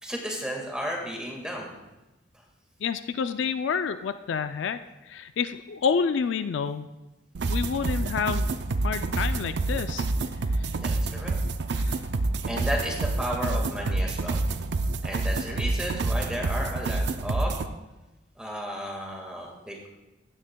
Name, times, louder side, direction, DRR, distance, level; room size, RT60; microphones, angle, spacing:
voice 1, 0.0-1.7 10.7-11.4 12.5-14.4 15.0-17.6 18.4-19.9, equal, 5° right, 0 dB, 1.6 m, -33 dB
voice 2, 2.8-4.8 5.0-6.9 7.5-8.5 8.8-10.1 10.5-10.7 11.7-12.0, left 6 dB, 70° left, 10 dB, 0.4 m, -29 dB
sound 1, 7.3-17.7, right 2 dB, 60° right, 0.5 m, -28 dB
15.0 x 9.8 x 2.2 m, 1.0 s
head